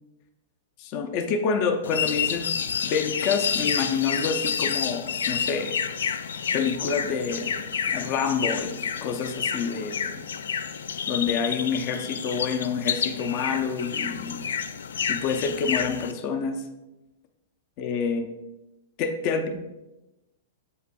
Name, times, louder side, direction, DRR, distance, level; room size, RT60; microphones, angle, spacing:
voice 1, 0.8-5.8 6.5-7.6 7.9-10.2 11.1-14.4 15.1-16.6 17.8-18.2 19.0-19.5, left 5 dB, 45° left, 6 dB, 0.6 m, -28 dB
sound 1, 1.8-16.1, left 7 dB, 85° left, 0.3 m, -29 dB
7.5 x 5.4 x 2.3 m, 1.0 s
hypercardioid pair, 125°, 0 cm